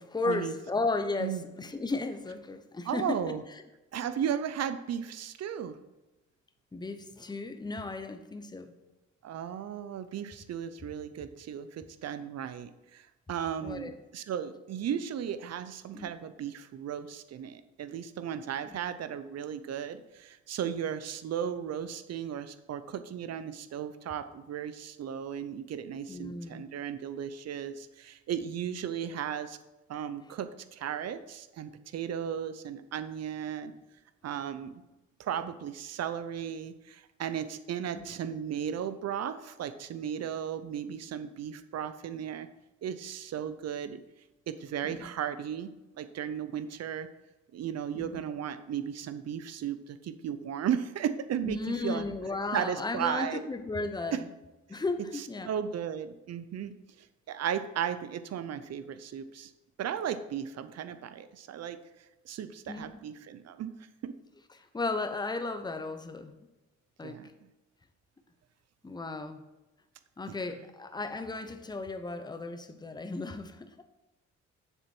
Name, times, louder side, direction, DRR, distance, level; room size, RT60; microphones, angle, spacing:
voice 1, 0.0-3.3 6.7-8.7 13.6-13.9 15.9-16.1 18.7-18.8 26.1-26.6 37.9-38.1 44.8-45.1 47.9-48.2 51.4-54.2 54.7-55.5 62.7-62.9 64.5-66.3 67.0-67.2 68.8-69.5 70.2-73.9, left 3 dB, 15° left, 8 dB, 0.8 m, -35 dB
voice 2, 2.9-3.4 3.9-5.8 9.2-29.6 29.9-33.7 34.2-34.8 35.2-42.5 42.8-44.0 44.5-45.7 46.0-47.1 47.5-52.1 52.5-53.4 54.1-54.2 55.4-56.7 57.3-59.5 59.8-61.8 62.3-63.7 64.0-64.1 67.0-67.3 70.3-70.4, right 9 dB, 55° right, 12 dB, 0.7 m, -35 dB
7.2 x 6.8 x 4.5 m, 1.0 s
cardioid pair, 90°, 30 cm